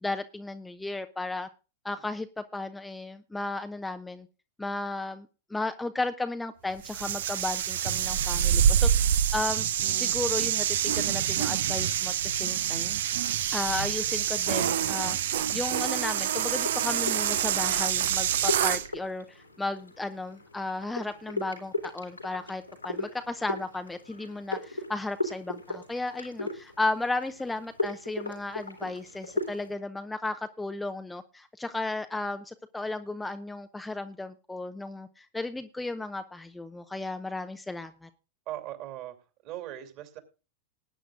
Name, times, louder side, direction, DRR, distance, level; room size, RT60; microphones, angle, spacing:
voice 1, 0.0-1.5 1.8-4.3 4.6-9.0 9.3-9.7 10.0-13.0 13.5-38.1, left 2 dB, 5° left, 8 dB, 0.6 m, -34 dB
sound 1, 6.8-18.9, right 9 dB, 60° right, 0.7 m, -26 dB
sound 2, 15.5-29.7, left 2 dB, 85° left, 2.6 m, -38 dB
voice 2, 38.5-39.2 39.4-40.2, right 13 dB, 40° right, 6 dB, 2.8 m, -39 dB
19.5 x 9.2 x 2.5 m, 0.33 s
figure-of-eight pair, 90°, 0 cm